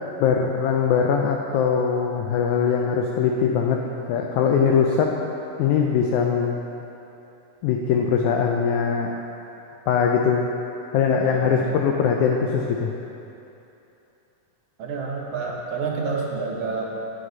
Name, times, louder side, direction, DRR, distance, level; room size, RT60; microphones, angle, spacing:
voice 1, 0.2-3.8 4.1-5.1 5.6-6.6 7.6-9.1 9.9-10.5 10.9-12.9, left 6 dB, 80° left, 1 dB, 1.7 m, -21 dB
voice 2, 11.2-11.7 14.8-16.8, right 4 dB, 60° right, -2 dB, 1.6 m, -29 dB
9.4 x 9.4 x 4.0 m, 2.9 s
omnidirectional pair, 3.9 m